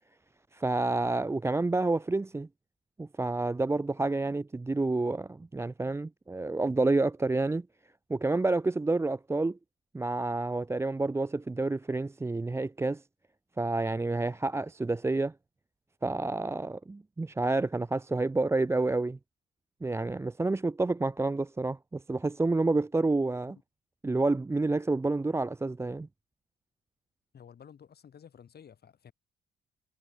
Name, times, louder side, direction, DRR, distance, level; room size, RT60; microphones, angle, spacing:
voice 1, 0.5-2.5 3.0-7.7 8.1-9.6 9.9-13.0 13.6-15.3 16.0-19.2 19.8-23.6 24.0-26.1, right 2 dB, 15° right, 0.5 m, -29 dB
voice 2, 27.3-29.1, left 8 dB, 55° left, 4.9 m, -53 dB
cardioid pair, 90°, 20 cm